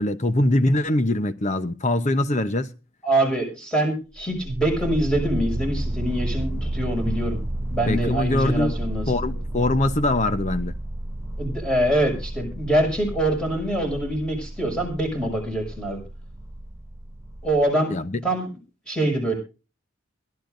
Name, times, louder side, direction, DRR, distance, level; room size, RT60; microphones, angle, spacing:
voice 1, 0.0-2.7 7.0-7.2 7.9-8.7 9.1-10.7 17.9-18.2, left 1 dB, 35° left, 0.9 m, -23 dB
voice 2, 3.0-7.4 7.7-9.1 11.4-16.0 17.4-18.0 18.2-18.5 18.9-19.3, right 1 dB, 5° left, 6.6 m, -24 dB
sound 1, 4.2-17.7, right 1 dB, 15° right, 0.8 m, -31 dB
22.0 x 12.5 x 2.7 m
head